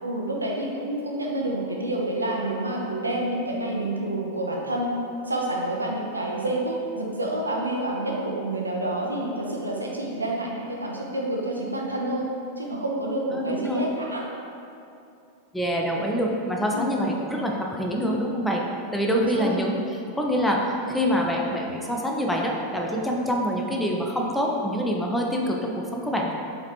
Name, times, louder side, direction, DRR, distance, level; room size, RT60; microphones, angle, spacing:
voice 1, 0.0-5.0 5.3-12.3 12.6-14.2 16.7-17.0 19.1-19.5, right 1 dB, 80° right, -1 dB, 0.5 m, -28 dB
voice 2, 13.3-13.9 15.5-18.7 18.9-19.8 20.2-20.6 20.9-26.3, equal, 5° left, -1 dB, 0.5 m, -25 dB
4.8 x 3.1 x 2.9 m, 2.7 s
figure-of-eight pair, 90°, 0 cm